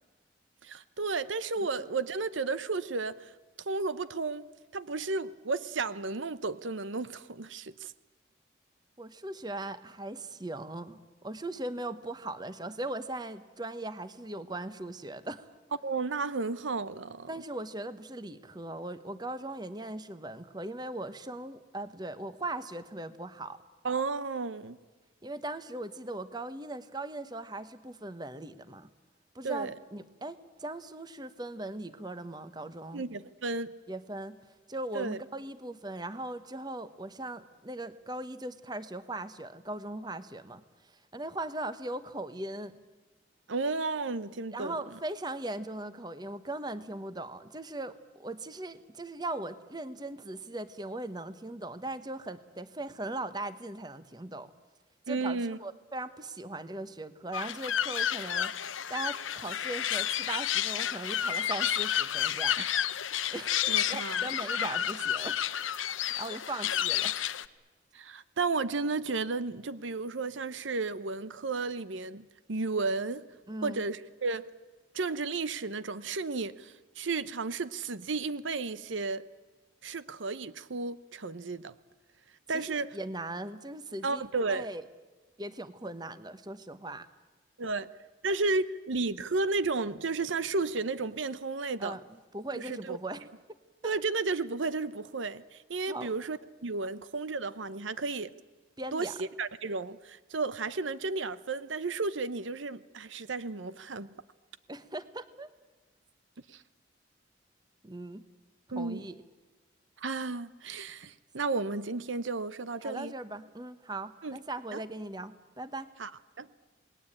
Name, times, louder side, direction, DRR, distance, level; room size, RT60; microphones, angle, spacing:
voice 1, 0.6-3.3 3.7-7.9 15.8-17.3 23.8-24.8 29.4-29.7 32.9-33.8 34.9-35.2 43.5-44.8 55.1-55.6 62.6-62.7 63.7-64.4 67.9-73.3 73.6-74.5 74.9-79.2 79.8-81.7 82.5-83.0 84.0-84.7 87.6-87.9 88.2-92.0 92.5-93.0 93.8-98.3 98.9-104.1 106.5-106.6 108.7-109.0 110.0-113.1 114.2-114.4 114.7-114.8 116.0-116.1 116.4-116.5, right 3 dB, 75° right, 15 dB, 0.8 m, -33 dB
voice 2, 9.0-15.5 17.3-23.6 25.2-28.9 29.3-33.0 33.9-34.4 34.7-40.6 41.1-42.7 44.5-54.5 55.1-58.5 58.9-62.7 63.3-65.4 66.2-67.1 73.5-73.8 82.5-82.7 82.9-84.8 85.4-87.1 91.8-92.0 92.3-93.3 95.9-96.1 96.8-96.9 98.8-99.1 104.7-105.5 107.8-108.2 108.8-109.2 112.8-115.9, right 2 dB, 20° right, 12 dB, 1.1 m, -39 dB
sound 1, 57.3-67.5, left 10 dB, 90° left, 0.9 m, -31 dB
28.0 x 20.0 x 8.9 m, 1.3 s
head